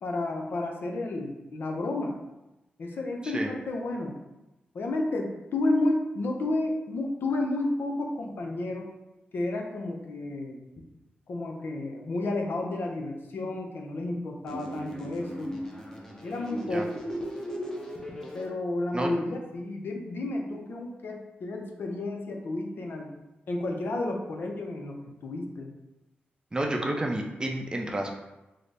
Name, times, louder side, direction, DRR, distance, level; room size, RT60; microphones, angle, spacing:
voice 1, 0.0-2.2 2.8-4.1 4.7-8.9 9.3-10.6 11.3-15.5 16.2-17.0 18.3-23.2 23.5-25.7, left 2 dB, 70° left, 1 dB, 0.5 m, -31 dB
sound 1, 14.5-18.5, equal, 15° left, 0.7 m, -37 dB
voice 2, 26.5-28.1, right 1 dB, 20° right, 2 dB, 0.5 m, -30 dB
3.8 x 2.0 x 3.4 m, 0.99 s
cardioid pair, 70°, 4 cm